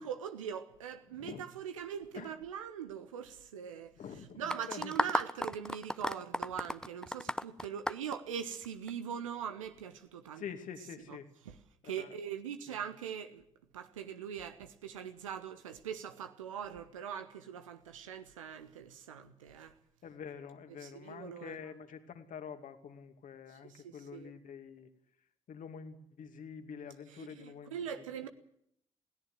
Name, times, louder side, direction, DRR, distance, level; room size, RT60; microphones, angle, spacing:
voice 1, 0.0-3.9 4.3-10.4 11.4-11.5 11.8-13.4 13.7-19.7 20.8-21.6 23.7-24.3 27.2-28.3, right 8 dB, 80° right, 1.4 m, -42 dB
voice 2, 1.1-1.5 2.1-2.3 4.0-4.9 10.3-11.3 11.8-12.1 12.7-12.8 20.0-24.9 25.5-27.8, left 7 dB, 50° left, 2.6 m, -47 dB
sound 1, 4.5-8.9, left 1 dB, 5° left, 0.9 m, -34 dB
21.5 x 17.5 x 7.8 m
figure-of-eight pair, 40°, 17 cm